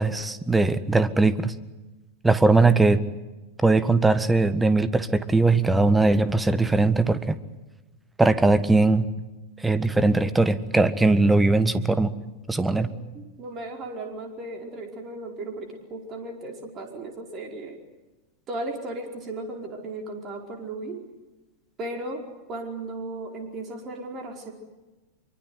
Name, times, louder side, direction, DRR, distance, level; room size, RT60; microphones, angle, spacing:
voice 1, 0.0-1.5 2.2-3.0 3.6-7.4 8.2-9.1 9.6-12.1 12.5-12.9, right 3 dB, 10° right, 14 dB, 1.5 m, -20 dB
voice 2, 13.1-17.8 18.5-21.0 21.8-22.2 22.5-24.5, right 2 dB, 30° right, 2 dB, 4.7 m, -36 dB
25.5 x 24.0 x 8.1 m, 1.1 s
figure-of-eight pair, 90°, 0 cm